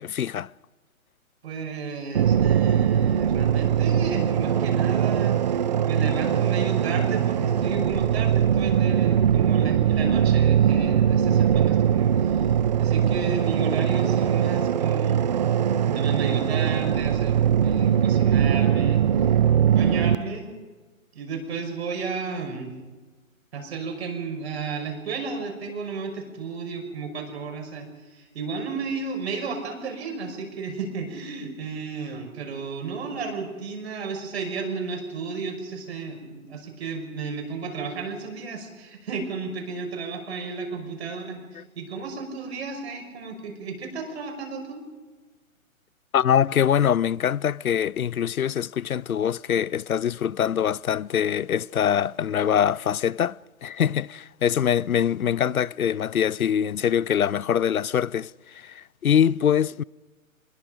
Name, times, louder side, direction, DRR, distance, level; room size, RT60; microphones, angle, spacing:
voice 1, 0.0-0.5 46.1-59.8, left 9 dB, 85° left, 0.6 m, -23 dB
voice 2, 1.4-12.5 12.8-15.2 15.8-19.0 19.7-20.5 21.1-22.7 23.5-44.8, right 4 dB, 50° right, 6.1 m, -33 dB
sound 1, 2.1-20.2, right 9 dB, 30° right, 0.6 m, -21 dB
26.5 x 21.5 x 5.2 m
figure-of-eight pair, 135°, 42 cm